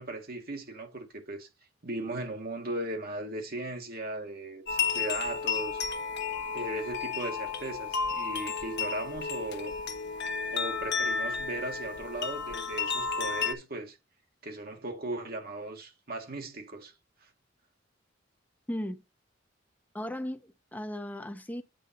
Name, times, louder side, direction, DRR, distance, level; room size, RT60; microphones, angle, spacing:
voice 1, 0.0-1.5 1.8-5.8 6.5-9.7 10.5-14.0 14.4-16.9 17.2-17.3, right 1 dB, 50° right, 1.9 m, -37 dB
sound 1, 4.7-13.5, left 5 dB, 60° left, 1.2 m, -32 dB
voice 2, 18.7-19.0 19.9-21.6, left 1 dB, 10° left, 0.9 m, -36 dB
8.7 x 5.3 x 4.2 m
head